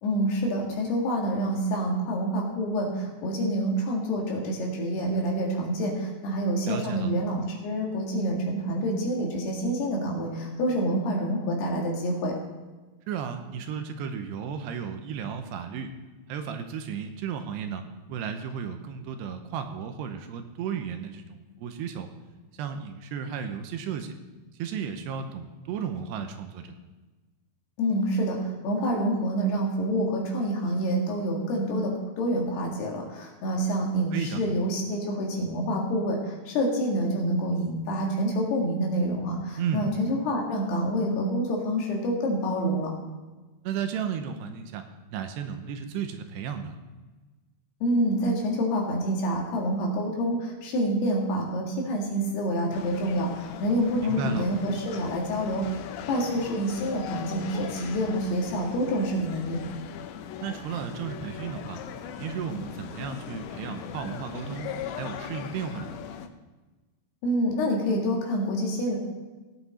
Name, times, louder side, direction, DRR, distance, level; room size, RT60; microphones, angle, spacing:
voice 1, 0.0-12.4 27.8-42.9 47.8-59.6 67.2-69.0, equal, 70° left, -1 dB, 4.0 m, -27 dB
voice 2, 6.7-7.1 13.1-15.9 16.3-17.8 18.1-22.1 22.6-24.1 24.6-26.8 34.1-34.4 39.6-39.9 43.6-44.8 45.1-46.8 54.0-54.5 60.4-61.8 62.2-66.2, right 7 dB, 80° right, 7 dB, 2.9 m, -34 dB
sound 1, 52.7-66.3, left 9 dB, 85° left, 3.1 m, -39 dB
18.0 x 8.4 x 4.2 m, 1.2 s
omnidirectional pair, 5.0 m